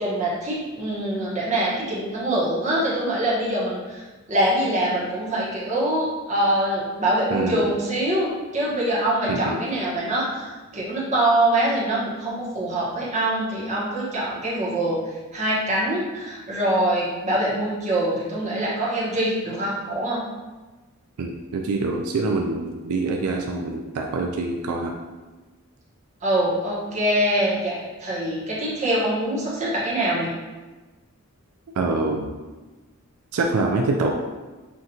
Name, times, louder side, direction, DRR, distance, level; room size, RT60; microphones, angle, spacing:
voice 1, 0.0-4.0 4.3-10.4 10.7-15.0 15.3-20.2 26.2-30.3, right 1 dB, 30° right, -6 dB, 1.0 m, -24 dB
voice 2, 7.3-7.7 9.3-9.6 21.2-24.9 31.8-32.3 33.3-34.1, right 3 dB, 85° right, 1 dB, 0.4 m, -25 dB
5.8 x 2.4 x 2.6 m, 1.2 s
head